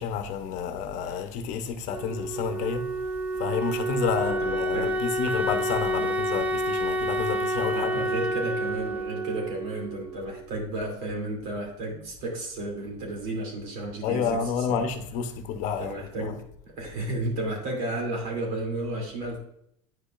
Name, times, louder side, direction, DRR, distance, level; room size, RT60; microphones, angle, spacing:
voice 1, 0.0-2.9 3.4-8.0 14.0-16.3, left 7 dB, 55° left, 0.8 m, -30 dB
Wind instrument woodwind instrument, 1.9-10.6, right 1 dB, 10° right, 0.6 m, -29 dB
voice 2, 4.2-5.0 6.0-6.4 7.7-14.4 14.7-14.9 15.8-19.4, right 2 dB, 70° right, 2.7 m, -33 dB
9.3 x 5.2 x 2.5 m
supercardioid pair, 130°, 15 cm